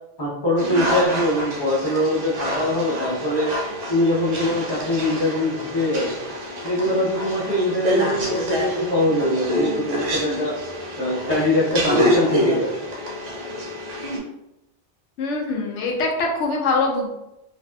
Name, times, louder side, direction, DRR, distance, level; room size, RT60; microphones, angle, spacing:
voice 1, 0.2-3.5 3.9-6.2 6.6-10.6 11.0-12.7, left 1 dB, 25° left, -7 dB, 0.8 m, -22 dB
sound 1, 0.6-14.2, left 1 dB, 50° right, 0.6 m, -27 dB
voice 2, 15.2-17.1, left 3 dB, 90° left, 0 dB, 0.9 m, -23 dB
2.6 x 2.4 x 2.2 m, 0.90 s
omnidirectional pair, 1.2 m